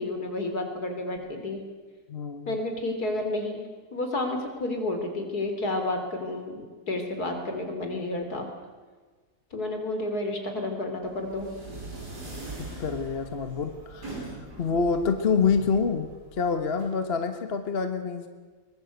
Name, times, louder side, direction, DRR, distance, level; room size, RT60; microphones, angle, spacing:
voice 1, 0.0-1.6 2.5-3.6 3.9-8.5 9.5-11.5, left 2 dB, 70° left, 5 dB, 3.9 m, -31 dB
voice 2, 2.1-2.6 12.6-18.3, left 5 dB, 40° left, 8 dB, 1.4 m, -27 dB
sound 1, 11.1-16.9, right 2 dB, 85° right, 6.5 m, -41 dB
22.5 x 20.5 x 8.0 m, 1.4 s
omnidirectional pair, 1.7 m